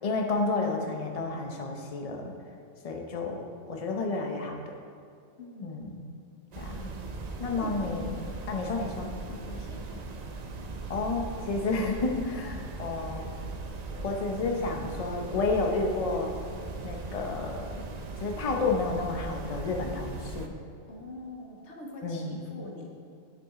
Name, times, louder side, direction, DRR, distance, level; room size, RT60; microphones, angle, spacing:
voice 1, 0.0-2.3 2.8-4.6 5.6-6.0 6.6-6.9 7.4-9.1 10.9-13.3 14.0-16.3 16.8-17.8 18.2-20.5 22.0-22.4, left 3 dB, 35° left, 2 dB, 0.7 m, -31 dB
voice 2, 5.4-5.7 7.4-8.2 9.3-10.1 10.6-10.7 12.2-12.8 20.9-22.9, left 1 dB, 60° left, 0 dB, 1.4 m, -44 dB
sound 1, 6.5-20.5, right 3 dB, 65° right, 0.4 m, -39 dB
9.4 x 6.1 x 3.7 m, 2.3 s
omnidirectional pair, 1.4 m